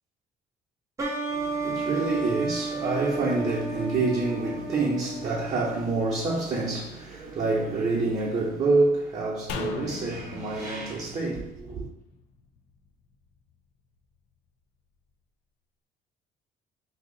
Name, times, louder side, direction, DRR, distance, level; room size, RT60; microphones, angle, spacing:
sound 1, 1.0-6.4, right 3 dB, 20° right, 0.7 m, -33 dB
voice 1, 1.3-11.9, right 3 dB, 40° right, 0.9 m, -27 dB
sound 2, 9.5-12.8 13.1-13.2, left 5 dB, 85° left, 0.4 m, -39 dB
2.8 x 2.6 x 3.8 m
cardioid pair, 110°, 17 cm